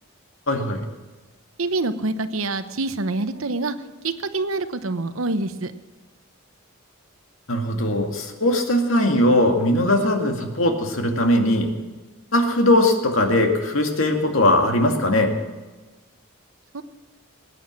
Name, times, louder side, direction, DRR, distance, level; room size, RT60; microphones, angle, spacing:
voice 1, 0.5-0.8 7.5-11.7 12.3-15.3, left 1 dB, 70° left, 4 dB, 2.2 m, -20 dB
voice 2, 1.6-3.8 4.0-5.7 16.7-16.8, right 2 dB, 80° right, 11 dB, 0.9 m, -26 dB
20.0 x 9.4 x 7.5 m, 1.2 s
head